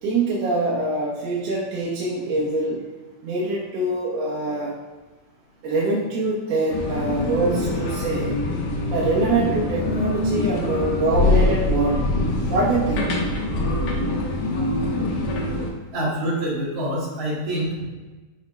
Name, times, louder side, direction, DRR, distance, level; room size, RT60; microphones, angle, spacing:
voice 1, 0.0-2.8 3.2-4.8 5.6-8.5 8.9-12.2 12.5-13.2, right 2 dB, 65° right, -7 dB, 1.7 m, -24 dB
sound 1, 6.7-15.7, left 2 dB, 85° left, 2.7 m, -24 dB
voice 2, 15.9-17.8, right 1 dB, 50° right, -7 dB, 3.1 m, -26 dB
12.5 x 4.3 x 2.2 m, 1.2 s
omnidirectional pair, 3.8 m